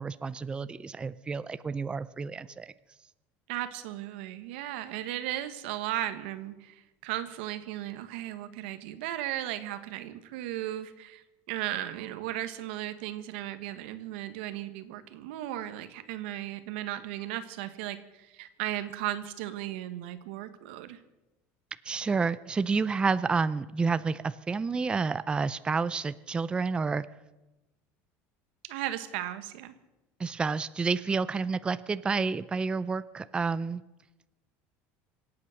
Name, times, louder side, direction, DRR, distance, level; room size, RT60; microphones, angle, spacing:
voice 1, 0.0-2.7 21.9-27.1 30.2-33.8, right 4 dB, 15° right, 15 dB, 0.5 m, -29 dB
voice 2, 3.5-21.0 28.6-29.7, right 13 dB, 90° right, 11 dB, 1.4 m, -36 dB
25.5 x 8.6 x 6.4 m, 1.0 s
cardioid pair, 130°, 6 cm